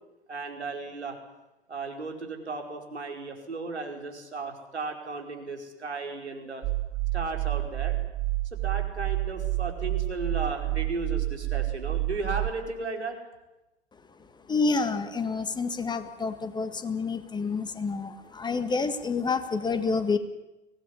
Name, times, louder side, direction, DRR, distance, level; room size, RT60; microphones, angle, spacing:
voice 1, 0.3-1.2 1.7-6.6 7.1-8.0 8.5-13.2, right 3 dB, 85° right, 2 dB, 5.1 m, -35 dB
sound 1, 6.6-12.5, right 19 dB, 30° right, 1.3 m, -29 dB
voice 2, 14.5-20.2, left 4 dB, 15° left, 10 dB, 1.7 m, -28 dB
24.0 x 18.5 x 9.9 m, 0.98 s
figure-of-eight pair, 100°, 33 cm